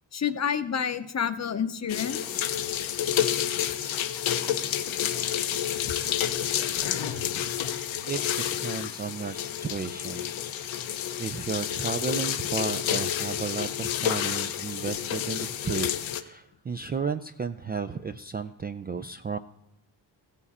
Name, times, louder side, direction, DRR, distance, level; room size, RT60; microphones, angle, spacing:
voice 1, 0.1-2.4, left 7 dB, 35° left, 11 dB, 0.7 m, -29 dB
sound 1, 1.9-16.2, left 10 dB, 85° left, 0.8 m, -29 dB
voice 2, 8.6-10.3 11.2-19.4, right 5 dB, 25° right, 7 dB, 0.3 m, -33 dB
15.5 x 7.2 x 4.2 m, 0.83 s
cardioid pair, 85°, 46 cm